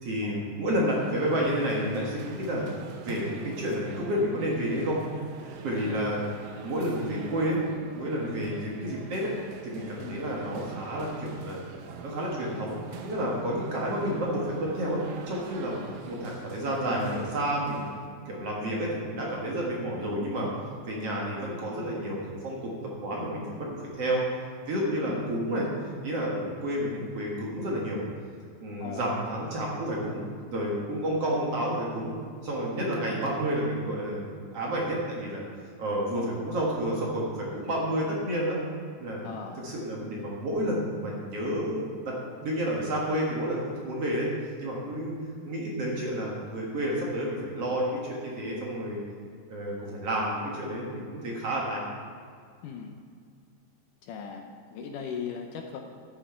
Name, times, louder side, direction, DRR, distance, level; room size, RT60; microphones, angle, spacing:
voice 1, 0.0-2.7 3.0-5.0 5.6-6.2 6.6-7.6 7.9-9.3 9.6-11.7 12.0-15.8 16.0-17.9 18.3-20.5 20.9-22.7 23.0-24.2 24.7-25.7 26.0-28.0 28.6-30.3 30.5-32.2 32.4-35.5 35.8-38.6 39.0-39.2 39.6-42.2 42.4-44.3 44.6-45.1 45.4-49.0 49.5-51.9, equal, 50° right, -3 dB, 2.3 m, -30 dB
sound 1, 0.8-18.1, right 5 dB, 75° right, 2.4 m, -44 dB
voice 2, 39.2-39.6 52.6-53.0 54.0-55.8, left 6 dB, 75° left, 3 dB, 2.1 m, -39 dB
13.0 x 8.9 x 4.5 m, 2.2 s
omnidirectional pair, 4.2 m